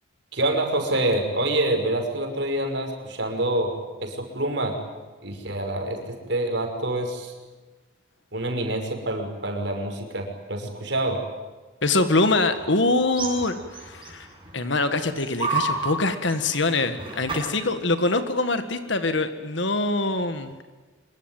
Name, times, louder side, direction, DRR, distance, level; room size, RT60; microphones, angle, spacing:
voice 1, 0.3-4.7 5.2-6.0 6.3-7.3 8.3-11.2, right 1 dB, 60° right, 4 dB, 5.8 m, -26 dB
voice 2, 11.8-14.3 14.5-20.6, left 2 dB, 65° left, 9 dB, 1.8 m, -24 dB
sound 1, 12.2-14.6 14.9-17.6, right 3 dB, 25° right, 6.8 m, -32 dB
25.5 x 24.0 x 9.2 m, 1.3 s
head